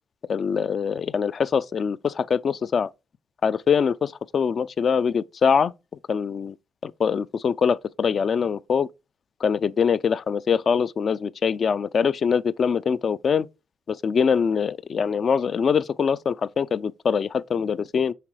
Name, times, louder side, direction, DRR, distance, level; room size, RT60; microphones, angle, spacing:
voice 1, 0.3-2.9 3.4-5.7 6.1-6.6 6.8-8.9 9.4-13.5 13.9-18.1, left 6 dB, 50° left, 0.4 m, -23 dB
5.7 x 3.9 x 4.7 m
cardioid pair, 90°, 0 cm